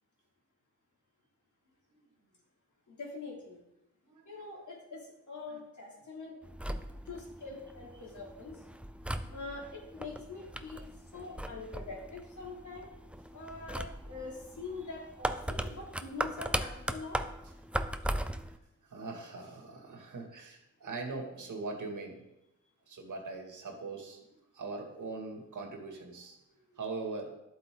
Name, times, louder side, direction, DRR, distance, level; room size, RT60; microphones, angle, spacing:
voice 1, 2.9-3.6 4.3-6.4 7.1-8.6 9.3-10.9 11.1-12.9 13.3-17.2, left 3 dB, 70° left, -3 dB, 3.5 m, -44 dB
voice 2, 4.0-4.5 5.5-5.6 6.7-6.9 7.9-8.1 9.0-9.4 11.3-11.4 18.2-18.4 18.8-22.2 22.9-24.2 24.5-27.3, right 3 dB, 75° right, 1 dB, 2.3 m, -42 dB
sound 1, 6.4-18.6, right 1 dB, 5° right, 0.6 m, -39 dB
11.5 x 8.1 x 3.9 m, 0.88 s
cardioid pair, 80°, 31 cm